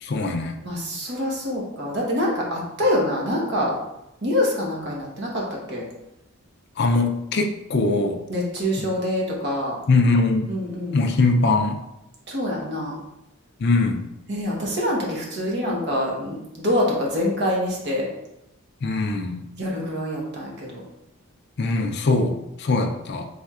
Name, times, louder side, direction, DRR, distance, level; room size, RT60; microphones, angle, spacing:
voice 1, 0.0-0.5 6.8-8.2 8.8-8.9 9.9-10.5 10.9-11.8 13.6-14.0 18.8-19.5 21.6-23.3, left 3 dB, 50° left, 4 dB, 0.4 m, -21 dB
voice 2, 0.6-3.7 4.2-5.4 5.7-5.8 8.3-9.8 10.5-11.0 12.3-13.0 14.3-18.1 19.6-20.8, left 1 dB, 50° right, -3 dB, 1.1 m, -25 dB
4.3 x 3.5 x 2.4 m, 0.88 s
head